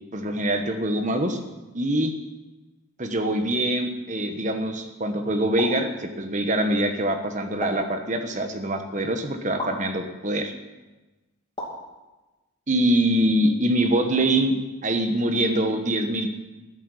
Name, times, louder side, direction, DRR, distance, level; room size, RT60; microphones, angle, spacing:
voice 1, 0.1-1.4 1.7-2.1 3.0-10.5 12.7-14.6 14.8-16.3, right 1 dB, 35° right, 6 dB, 1.2 m, -24 dB
sound 1, 5.6-5.9 7.6-7.9 9.6-9.8 11.6-11.9, left 1 dB, 20° left, 2.8 m, -33 dB
12.5 x 8.0 x 9.7 m, 1.1 s
head